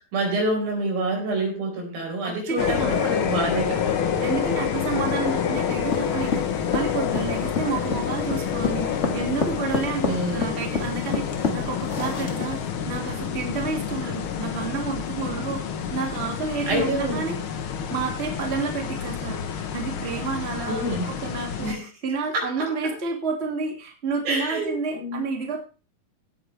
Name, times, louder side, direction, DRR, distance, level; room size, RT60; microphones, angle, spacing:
voice 1, 0.1-4.0 10.0-10.6 16.7-17.4 20.7-21.1 21.6-21.8 22.3-22.5 24.2-25.2, right 1 dB, 80° right, 0 dB, 6.6 m, -27 dB
voice 2, 2.2-3.0 4.2-15.6 15.9-17.4 17.9-21.8 22.0-25.6, right 4 dB, 20° right, 1 dB, 2.3 m, -30 dB
sound 1, 2.6-21.7, left 8 dB, 70° left, 1.2 m, -28 dB
sound 2, 5.9-12.7, left 4 dB, 35° left, 1.1 m, -28 dB
17.5 x 9.3 x 3.4 m, 0.34 s
omnidirectional pair, 4.1 m